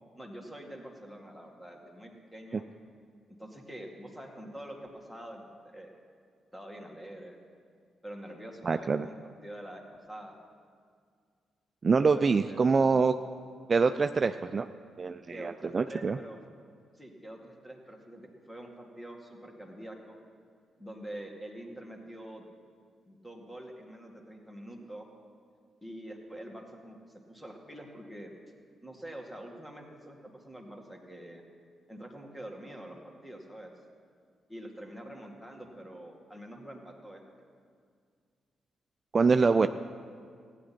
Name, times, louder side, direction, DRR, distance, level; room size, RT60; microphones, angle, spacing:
voice 1, 0.2-2.7 3.4-5.9 6.5-7.4 8.0-10.3 12.1-12.6 15.3-16.4 16.9-20.2 20.8-22.5 23.1-25.1 25.8-28.3 28.8-31.4 31.9-33.7 34.5-37.2, right 1 dB, 5° left, 2 dB, 2.1 m, -45 dB
voice 2, 8.6-9.1 11.8-13.1 13.7-14.7 15.0-16.2 39.1-39.7, right 4 dB, 45° right, 10 dB, 0.3 m, -25 dB
15.0 x 9.8 x 4.3 m, 2.1 s
supercardioid pair, 50°, 0 cm